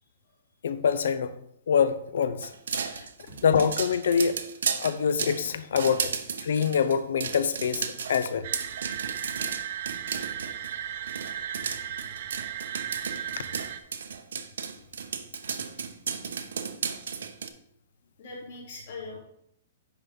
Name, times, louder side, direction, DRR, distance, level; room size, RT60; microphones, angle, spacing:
voice 1, 0.6-1.4 1.7-3.0 3.4-4.4 4.8-6.1 6.4-8.5, left 7 dB, 65° left, 0.6 m, -25 dB
sound 1, 2.4-10.7 11.1-17.5, right 6 dB, 85° right, 0.8 m, -34 dB
sound 2, 8.4-13.8, right 10 dB, 40° right, 0.5 m, -36 dB
voice 2, 11.6-12.4 13.4-13.5 18.2-19.2, left 3 dB, 45° left, 3.2 m, -43 dB
9.9 x 3.7 x 5.2 m
hypercardioid pair, 180°, 0 cm